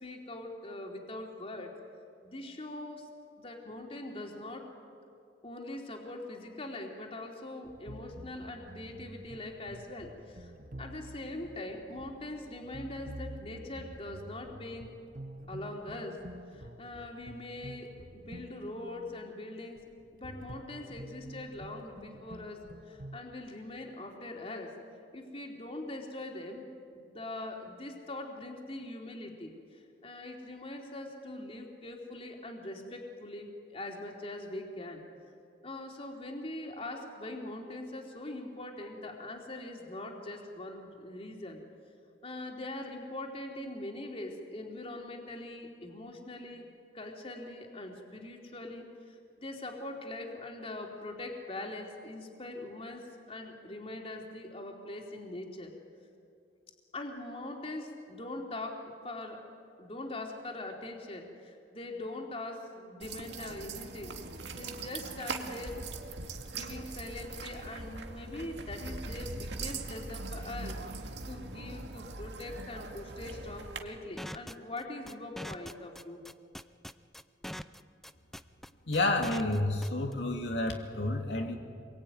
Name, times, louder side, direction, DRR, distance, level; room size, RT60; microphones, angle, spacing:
voice 1, 0.0-1.7 2.2-3.1 3.4-4.7 5.4-10.5 10.8-14.9 15.5-19.8 20.1-24.8 25.1-35.0 35.6-41.6 42.2-46.7 46.9-55.7 56.9-59.4 59.8-65.9 66.3-76.2, left 2 dB, 35° left, 1 dB, 3.3 m, -42 dB
sound 1, 7.6-23.2, right 1 dB, 50° right, 1.2 m, -48 dB
sound 2, 63.0-73.8, right 3 dB, 80° right, 2.1 m, -41 dB
sound 3, 74.2-80.1, equal, ahead, 0.6 m, -42 dB
voice 2, 78.9-81.5, left 2 dB, 75° left, 2 dB, 2.5 m, -30 dB
26.5 x 22.0 x 9.5 m, 2.5 s
head